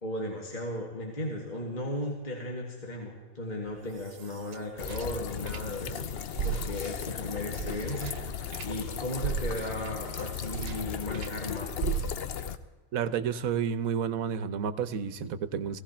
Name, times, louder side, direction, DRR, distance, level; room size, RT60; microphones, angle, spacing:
voice 1, 0.0-6.1 6.4-12.1, left 1 dB, 35° left, -1 dB, 2.0 m, -36 dB
sound 1, 3.7-6.0 6.3-11.4 11.8-12.5, right 8 dB, 55° right, 0.8 m, -37 dB
sound 2, 4.8-12.6, left 8 dB, 55° left, 0.8 m, -36 dB
voice 2, 12.9-15.8, right 7 dB, 85° right, 13 dB, 1.2 m, -30 dB
17.0 x 16.5 x 4.4 m, 1.4 s
omnidirectional pair, 1.4 m